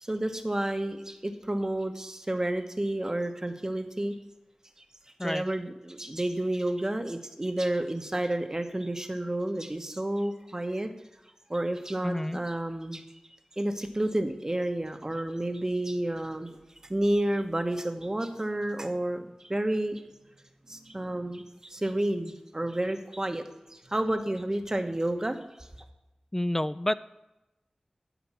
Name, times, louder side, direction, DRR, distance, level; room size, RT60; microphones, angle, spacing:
voice 1, 0.0-4.1 5.2-10.9 11.5-13.0 13.6-20.0 20.7-23.4 23.7-25.4, right 1 dB, 25° right, 7 dB, 1.1 m, -30 dB
voice 2, 12.0-12.4 26.3-26.9, left 1 dB, 15° left, 15 dB, 0.3 m, -29 dB
13.5 x 5.2 x 7.3 m, 0.97 s
wide cardioid pair, 70°, 2 cm